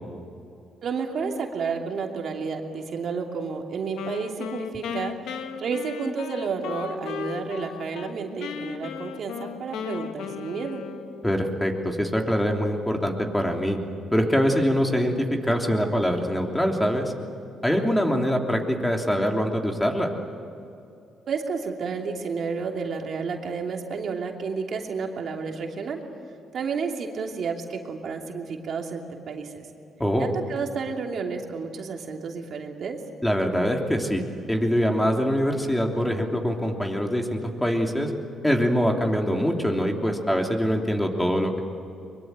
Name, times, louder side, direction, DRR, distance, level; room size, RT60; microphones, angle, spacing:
voice 1, 0.8-5.1 5.6-10.8 21.3-26.0 26.5-29.6 30.2-33.0, right 5 dB, 60° right, 2 dB, 2.9 m, -31 dB
Wind instrument woodwind instrument, 3.9-8.1 8.4-11.3, left 7 dB, 85° left, 1.4 m, -36 dB
voice 2, 11.2-13.8 14.1-15.1 15.4-17.1 17.6-20.1 30.0-30.3 33.2-38.1 38.4-41.6, equal, 5° left, 2 dB, 3.2 m, -24 dB
23.0 x 22.5 x 9.1 m, 2.6 s
cardioid pair, 90°, 0 cm